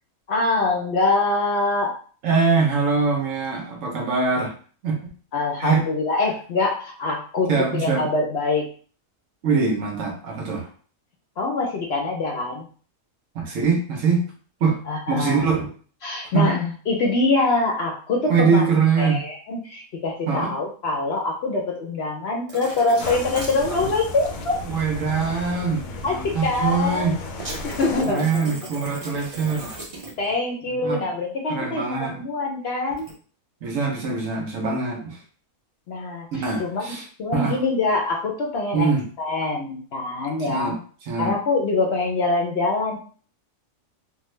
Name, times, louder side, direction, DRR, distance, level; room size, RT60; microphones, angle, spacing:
voice 1, 0.3-1.9 5.3-8.7 11.4-12.7 14.9-15.4 16.0-18.7 19.0-24.6 26.0-27.1 27.8-28.4 30.2-31.8 32.1-33.1 35.9-38.9 39.2-40.7 41.2-43.0, left 3 dB, 60° left, 1 dB, 0.8 m, -24 dB
voice 2, 2.2-4.5 4.8-5.1 5.6-5.9 7.5-8.1 9.4-10.7 13.3-14.2 14.6-14.8 15.1-15.7 16.3-16.5 18.3-19.2 20.3-20.5 24.7-27.2 28.0-29.7 30.7-31.1 31.5-32.2 33.6-35.2 36.3-37.1 37.3-37.6 38.7-39.0 40.4-40.8 41.1-41.3, right 5 dB, 70° right, 1 dB, 1.1 m, -23 dB
sound 1, 22.5-23.9 27.4-30.3 32.9-33.1, right 2 dB, 40° right, 0.5 m, -36 dB
sound 2, 23.0-28.0, left 3 dB, 80° left, 1.0 m, -34 dB
3.4 x 2.1 x 3.1 m, 0.41 s
omnidirectional pair, 1.4 m